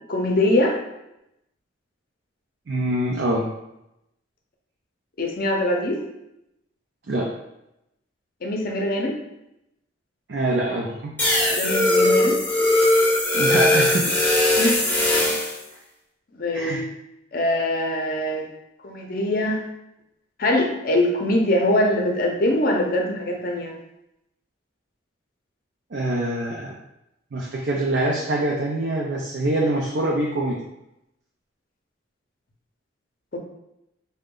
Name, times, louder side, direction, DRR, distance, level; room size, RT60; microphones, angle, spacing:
voice 1, 0.1-0.8 5.2-6.0 8.4-9.2 11.5-12.4 14.6-14.8 16.3-16.8 17.3-18.5 18.8-19.6 20.4-23.7 33.3-33.4, left 1 dB, 50° left, 1 dB, 0.6 m, -22 dB
voice 2, 2.7-3.5 7.1-7.3 10.3-11.1 13.3-14.1 16.5-16.8 25.9-26.7 27.3-30.6, right 1 dB, 60° right, -2 dB, 0.5 m, -24 dB
sound 1, 11.2-15.6, left 1 dB, 10° left, 0.7 m, -19 dB
3.8 x 2.2 x 3.7 m, 0.86 s
head